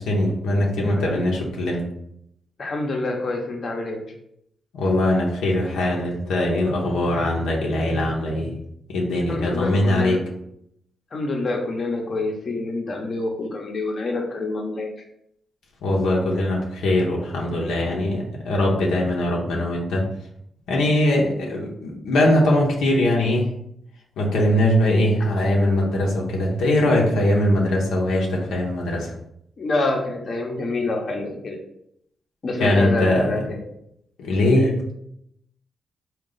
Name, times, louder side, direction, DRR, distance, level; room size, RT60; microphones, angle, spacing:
voice 1, 0.0-1.8 4.7-8.6 8.9-10.2 15.8-20.0 20.7-23.5 24.2-29.1 32.6-33.3 34.2-34.9, left 1 dB, 90° left, -2 dB, 0.7 m, -21 dB
voice 2, 2.6-4.0 9.3-10.2 11.1-14.9 29.6-31.6 32.4-33.6 34.6-34.8, left 2 dB, 55° left, 1 dB, 0.8 m, -27 dB
3.7 x 2.3 x 3.9 m, 0.75 s
cardioid pair, 70°, 0 cm